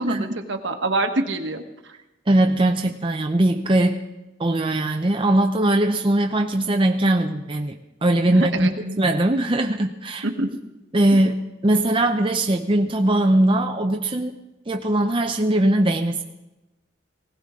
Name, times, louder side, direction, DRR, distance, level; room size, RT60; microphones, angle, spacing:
voice 1, 0.0-1.9 8.3-9.0 10.2-10.5 11.1-11.2, right 2 dB, 65° right, 5 dB, 1.4 m, -26 dB
voice 2, 2.3-4.0 4.4-7.7 8.0-10.3 10.9-14.3 14.7-16.2, right 1 dB, 25° right, 3 dB, 0.7 m, -20 dB
20.0 x 17.0 x 3.7 m, 0.99 s
head